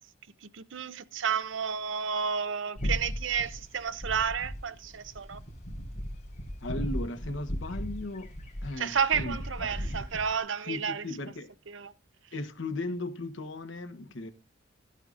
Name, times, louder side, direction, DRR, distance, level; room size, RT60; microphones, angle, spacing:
voice 1, 0.4-5.4 8.8-11.0 11.7-11.9, right 6 dB, 75° right, 0.7 m, -31 dB
sound 1, 2.7-10.4, equal, 40° left, 4.1 m, -37 dB
voice 2, 6.6-8.3 8.6-9.4 10.6-11.5 12.3-14.3, left 2 dB, 70° left, 1.2 m, -36 dB
13.5 x 9.0 x 2.5 m
head